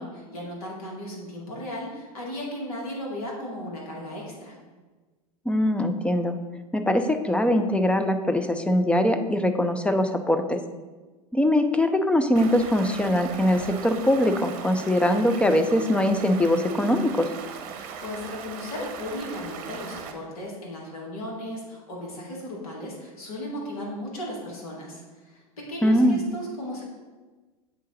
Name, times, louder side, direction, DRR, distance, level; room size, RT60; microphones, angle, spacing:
voice 1, 0.0-4.5 18.0-26.8, left 1 dB, 70° left, -2 dB, 2.1 m, -36 dB
voice 2, 5.5-6.4 6.7-10.6 11.3-17.3 25.8-26.2, left 1 dB, 5° left, 7 dB, 0.4 m, -22 dB
Stream, 12.3-20.1, right 6 dB, 45° right, 0.8 m, -39 dB
8.0 x 3.7 x 4.0 m, 1.3 s
hypercardioid pair, 95°, 19 cm